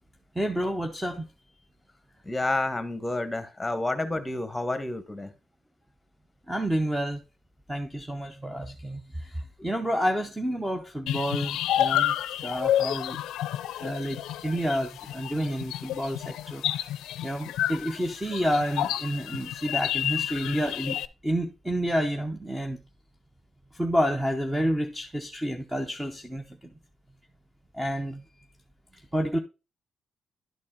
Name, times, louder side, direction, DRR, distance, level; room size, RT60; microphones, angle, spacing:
voice 1, 0.4-1.3 6.5-7.2 7.7-12.1 12.4-13.2 13.8-16.9 17.2-21.0 21.2-22.8 23.7-26.6 27.7-28.2 29.1-29.4, equal, 10° right, 0.7 m, -29 dB
voice 2, 2.2-5.3, left 2 dB, 10° left, 1.2 m, -29 dB
sound 1, 11.1-21.1, left 12 dB, 85° left, 0.4 m, -30 dB
11.0 x 4.2 x 3.8 m
cardioid pair, 90°, 0 cm